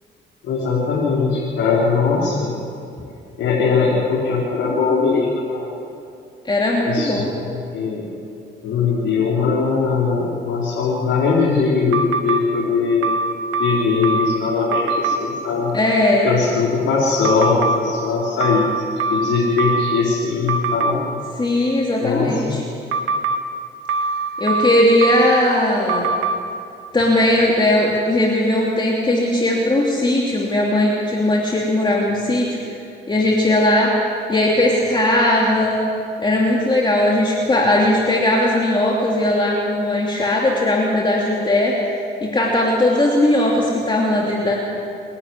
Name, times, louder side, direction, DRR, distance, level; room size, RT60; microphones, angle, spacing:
voice 1, 0.4-2.5 3.4-5.7 6.8-8.0 8.6-13.1 13.6-15.8 16.2-18.7 19.1-21.0 22.0-22.6, left 4 dB, 85° left, -6 dB, 4.7 m, -20 dB
voice 2, 6.4-7.3 15.7-16.3 21.4-22.6 24.4-26.1 26.9-32.6 33.1-33.9 34.3-35.8 36.2-41.8 42.2-44.6, left 1 dB, 25° left, -3 dB, 2.9 m, -18 dB
sound 1, 11.9-12.4 13.0-14.4 14.7-15.2 17.2-17.8 18.4-20.0 20.5-20.9 22.9-23.4 23.9-25.4 25.9-26.3, right 3 dB, 85° right, 1.6 m, -22 dB
27.5 x 11.5 x 9.8 m, 2.6 s
cardioid pair, 90°, 20 cm